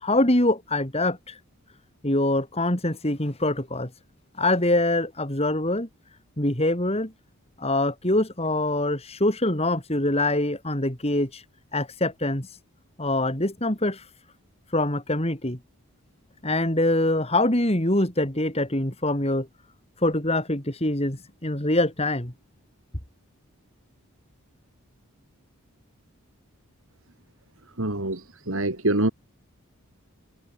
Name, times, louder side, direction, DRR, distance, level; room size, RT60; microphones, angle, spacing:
voice 1, 0.0-1.4 2.0-3.9 4.4-5.9 6.4-7.1 7.6-11.4 11.7-12.6 13.0-14.1 14.7-15.6 16.4-19.5 20.0-22.3, left 1 dB, 25° left, 3.3 m, -24 dB
voice 2, 27.8-29.1, right 1 dB, 65° right, 3.0 m, -25 dB
head